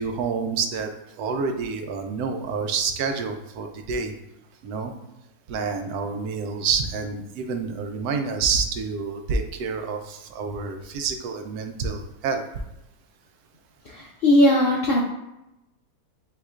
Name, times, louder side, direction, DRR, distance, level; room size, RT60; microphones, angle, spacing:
voice 1, 0.0-4.1 4.6-4.9 5.5-12.4, right 5 dB, 80° right, 5 dB, 1.1 m, -28 dB
voice 2, 13.9-15.0, left 1 dB, 70° left, -3 dB, 0.5 m, -19 dB
7.6 x 2.8 x 2.4 m, 0.91 s
omnidirectional pair, 1.6 m